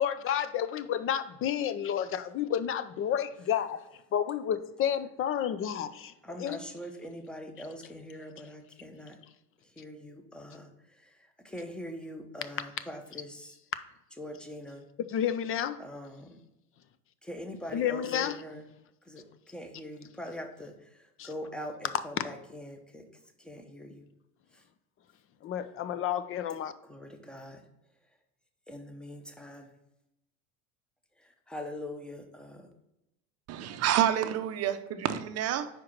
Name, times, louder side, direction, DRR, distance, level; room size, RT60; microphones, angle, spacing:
voice 1, 0.0-3.8 4.1-6.6 15.1-15.8 17.7-18.4 21.2-21.3 22.2-22.3 25.4-26.7, left 9 dB, 35° left, 0.5 m, -30 dB
voice 2, 6.2-9.2 9.8-10.7 11.4-13.5 14.2-14.8 15.8-16.4 17.2-18.6 19.1-20.8 21.2-23.1 23.4-24.1 26.9-27.6 28.7-29.7 31.5-32.7, left 1 dB, ahead, 0.9 m, -42 dB
voice 3, 33.5-35.7, right 11 dB, 40° right, 0.7 m, -28 dB
5.1 x 4.7 x 5.9 m
hypercardioid pair, 100°, 40 cm